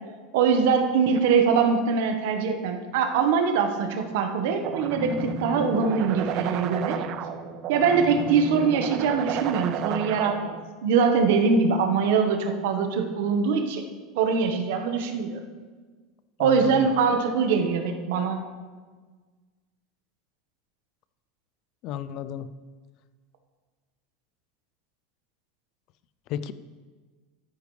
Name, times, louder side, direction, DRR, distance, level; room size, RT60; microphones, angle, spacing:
voice 1, 0.3-7.0 7.7-10.5 10.8-13.8 14.1-15.4 16.4-18.4, right 5 dB, 70° right, 5 dB, 1.3 m, -23 dB
sound 1, 4.6-10.6, right 6 dB, 35° right, 0.5 m, -32 dB
voice 2, 16.4-16.9 21.8-22.5 26.3-26.5, left 10 dB, 40° left, 14 dB, 0.4 m, -32 dB
13.0 x 10.0 x 3.3 m, 1.4 s
supercardioid pair, 165°, 0 cm